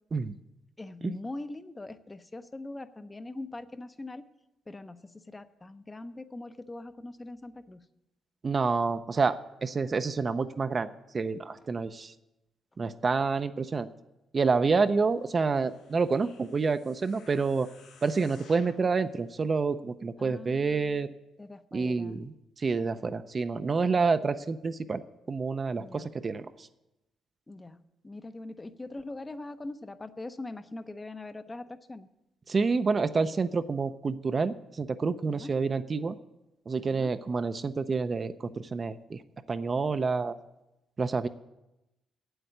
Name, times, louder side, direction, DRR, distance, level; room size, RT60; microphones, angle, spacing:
voice 1, 0.8-4.3 4.7-7.9 11.5-11.7 20.2-21.1 21.4-22.2 25.8-26.1 27.5-32.1 35.2-35.5 36.8-37.2, left 2 dB, 20° left, 10 dB, 0.6 m, -42 dB
voice 2, 8.4-10.9 11.1-12.1 12.8-13.9 14.3-17.7 18.0-21.1 21.7-25.0 25.3-26.7 32.5-36.2 36.7-39.2 39.5-40.4 41.0-41.3, right 4 dB, 35° right, 10 dB, 0.5 m, -28 dB
sound 1, 15.3-18.9 19.5-19.6, left 5 dB, 90° left, 1.6 m, -57 dB
8.3 x 8.0 x 9.0 m, 0.94 s
cardioid pair, 90°, 0 cm